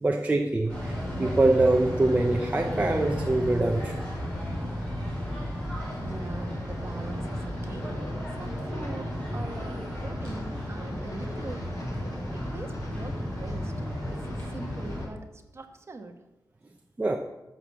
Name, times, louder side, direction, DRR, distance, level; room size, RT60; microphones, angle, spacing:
voice 1, 0.0-3.9 17.0-17.2, right 2 dB, 20° right, 2 dB, 0.8 m, -24 dB
sound 1, 0.7-15.0, equal, 15° left, 4.4 m, -33 dB
sound 2, 5.6-15.1, left 1 dB, 50° left, 2.6 m, -45 dB
voice 2, 6.0-8.0 8.4-11.8 12.1-13.9 14.1-16.2, right 2 dB, 40° right, 6 dB, 1.2 m, -42 dB
13.0 x 6.3 x 7.2 m, 0.97 s
wide cardioid pair, 165°, 7 cm